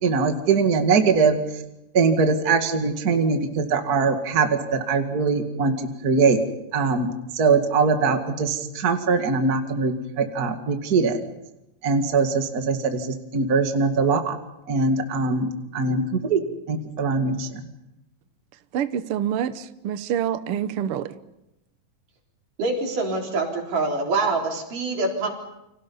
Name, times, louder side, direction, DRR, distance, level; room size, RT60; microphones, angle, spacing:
voice 1, 0.0-1.4 1.9-6.4 6.7-11.2 11.8-14.4 14.7-16.4 16.7-17.6, right 4 dB, 35° right, 5 dB, 2.0 m, -22 dB
voice 2, 18.7-21.2, right 9 dB, 90° right, 12 dB, 1.2 m, -27 dB
voice 3, 22.6-25.3, right 3 dB, 65° right, 0 dB, 5.4 m, -25 dB
30.0 x 26.0 x 5.5 m, 0.90 s
omnidirectional pair, 4.0 m